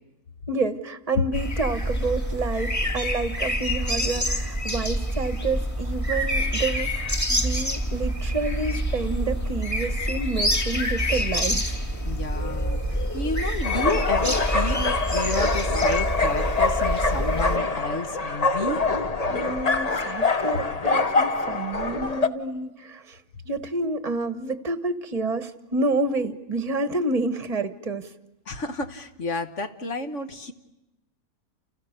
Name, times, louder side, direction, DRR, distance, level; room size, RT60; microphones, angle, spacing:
voice 1, 0.5-11.6 19.3-23.2 23.4-28.1, right 3 dB, 25° right, 11 dB, 1.3 m, -29 dB
sound 1, 1.3-17.6, equal, 10° left, 1.9 m, -27 dB
voice 2, 12.0-18.8 28.5-30.5, left 3 dB, 50° left, 7 dB, 1.5 m, -31 dB
sound 2, 13.6-22.3, left 3 dB, 30° left, 1.0 m, -25 dB
29.5 x 29.5 x 6.7 m, 0.96 s
omnidirectional pair, 1.7 m